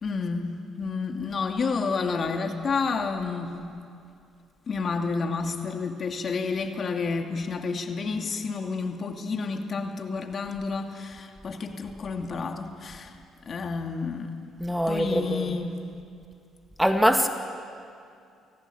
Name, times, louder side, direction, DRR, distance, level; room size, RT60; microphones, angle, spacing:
voice 1, 0.0-3.6 4.7-13.2 13.4-14.3 14.9-15.8, left 4 dB, 45° left, 4 dB, 2.5 m, -30 dB
voice 2, 14.6-15.5 16.8-17.3, equal, 5° right, 6 dB, 1.9 m, -23 dB
26.0 x 17.0 x 8.7 m, 2.4 s
hypercardioid pair, 55°, 0 cm